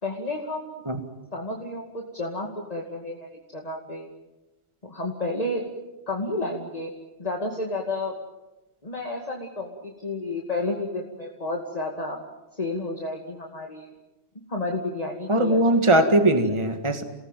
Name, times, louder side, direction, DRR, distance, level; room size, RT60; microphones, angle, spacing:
voice 1, 0.0-0.8 1.3-4.1 4.8-5.6 6.1-6.9 7.2-8.1 8.8-12.2 12.6-13.9 14.5-15.6, left 2 dB, 35° left, 0 dB, 2.6 m, -31 dB
voice 2, 15.3-17.0, right 1 dB, 25° right, 7 dB, 2.0 m, -20 dB
29.0 x 19.0 x 9.2 m, 1.1 s
omnidirectional pair, 1.1 m